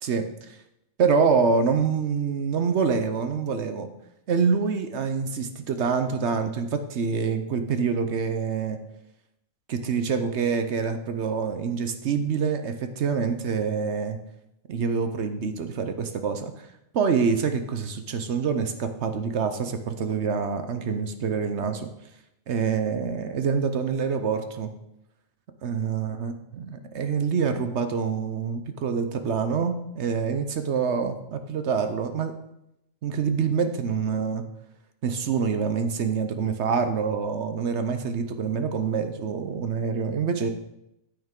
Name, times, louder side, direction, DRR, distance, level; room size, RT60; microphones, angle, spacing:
voice 1, 0.0-0.6 1.0-3.9 4.3-8.8 9.7-14.2 14.7-16.7 16.9-21.9 22.5-24.7 25.6-26.7 26.9-32.3 33.0-34.4 35.0-40.5, right 5 dB, 60° right, 8 dB, 0.9 m, -26 dB
9.1 x 8.8 x 3.7 m, 0.84 s
omnidirectional pair, 1.5 m